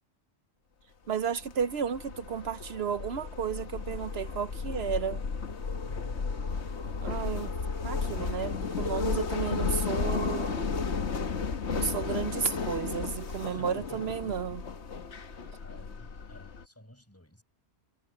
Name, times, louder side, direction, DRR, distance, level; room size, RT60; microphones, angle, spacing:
voice 1, 1.1-5.2 7.0-7.5 7.8-10.6 11.7-14.6, right 7 dB, 70° right, 1.0 m, -33 dB
sound 1, 1.4-16.6, left 5 dB, 90° left, 1.6 m, -33 dB
voice 2, 5.8-6.5 13.4-14.4 15.6-17.4, equal, 15° left, 6.1 m, -53 dB
omnidirectional pair, 1.1 m